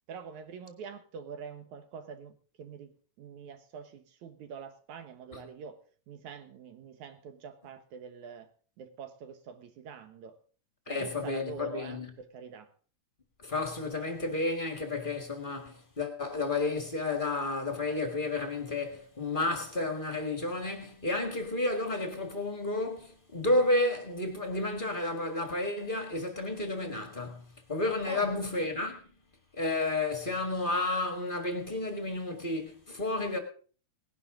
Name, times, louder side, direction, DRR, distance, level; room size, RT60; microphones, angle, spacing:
voice 1, 0.1-5.8 6.1-8.5 8.8-10.3 10.9-12.7 28.0-28.4, right 6 dB, 70° right, 2.5 m, -45 dB
voice 2, 10.9-12.1 13.4-29.0 29.6-33.4, left 2 dB, 25° left, 1.1 m, -31 dB
18.5 x 11.0 x 3.8 m
omnidirectional pair, 3.6 m